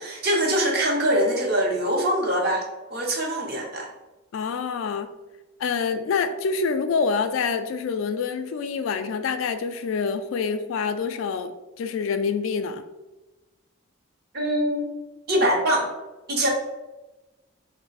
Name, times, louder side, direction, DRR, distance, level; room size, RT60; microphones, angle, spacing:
voice 1, 0.0-3.9 14.3-14.9 15.3-15.9 16.3-16.5, right 1 dB, 50° right, -1 dB, 0.7 m, -23 dB
voice 2, 4.3-5.1 5.6-12.8, left 5 dB, 75° left, 9 dB, 0.3 m, -26 dB
3.3 x 2.0 x 3.9 m, 1.1 s
head